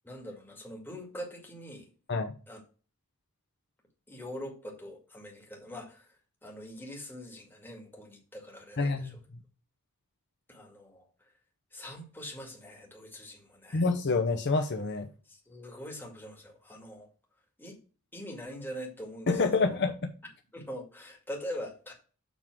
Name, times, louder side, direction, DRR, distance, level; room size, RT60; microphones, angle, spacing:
voice 1, 0.0-1.9 2.5-2.6 4.1-6.1 6.4-9.2 10.5-11.1 11.7-13.8 15.3-17.1 17.6-17.8 18.1-19.8 20.5-21.9, equal, 10° left, 2.1 m, -43 dB
voice 2, 8.8-9.1 13.7-15.1 19.3-19.9, left 3 dB, 50° left, 0.8 m, -27 dB
7.2 x 3.6 x 6.0 m
head